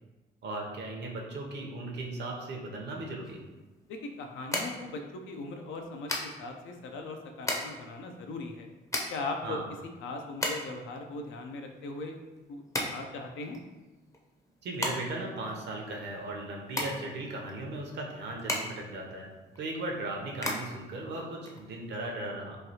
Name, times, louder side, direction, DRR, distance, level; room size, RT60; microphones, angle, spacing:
voice 1, 0.4-3.4 9.4-9.7 14.6-22.6, right 2 dB, 60° right, 0 dB, 0.7 m, -37 dB
sound 1, 3.2-22.1, left 1 dB, 15° left, 0.5 m, -38 dB
voice 2, 3.9-8.7 9.1-9.6 10.0-12.2 12.5-13.6, left 3 dB, 80° left, 3 dB, 0.5 m, -39 dB
3.1 x 2.3 x 2.7 m, 1.2 s
cardioid pair, 90°, 20 cm